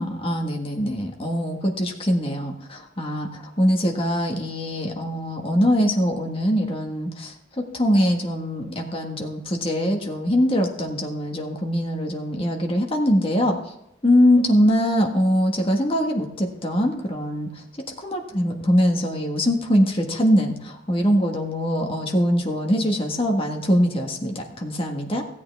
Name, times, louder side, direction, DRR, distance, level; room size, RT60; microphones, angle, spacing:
voice 1, 0.0-3.3 3.6-13.5 14.0-17.5 18.0-25.2, equal, 30° left, 2 dB, 1.5 m, -22 dB
15.5 x 8.5 x 3.5 m, 0.84 s
head